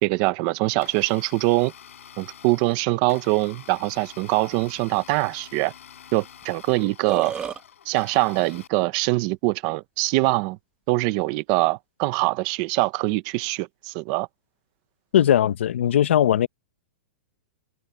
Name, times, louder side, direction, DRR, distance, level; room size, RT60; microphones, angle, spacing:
voice 1, 0.0-1.7 2.2-5.7 6.1-7.3 7.9-10.6 10.9-14.3, right 21 dB, 25° right, 0.9 m, -23 dB
Domestic sounds home sounds, 0.7-8.7, left 9 dB, 90° left, 7.1 m, -47 dB
Burping eructation, 6.4-6.5 6.8-7.6, right 7 dB, 10° right, 1.9 m, -31 dB
voice 2, 15.1-16.5, left 10 dB, 65° left, 0.9 m, -19 dB
supercardioid pair, 175°, 7 cm